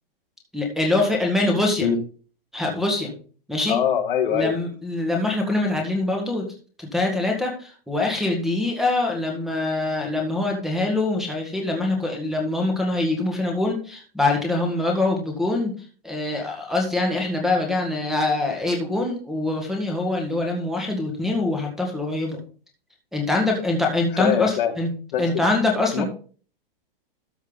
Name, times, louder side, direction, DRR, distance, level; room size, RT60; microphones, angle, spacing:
voice 1, 0.5-1.9 2.5-3.1 3.5-3.8 4.3-6.5 6.8-15.7 16.0-22.4 23.1-24.9 25.2-26.0, left 2 dB, ahead, 1.7 m, -24 dB
voice 2, 3.7-4.5 24.2-24.7 25.1-25.3 25.9-26.1, left 8 dB, 65° left, 2.0 m, -22 dB
13.5 x 5.4 x 3.9 m
hypercardioid pair, 165°, 29 cm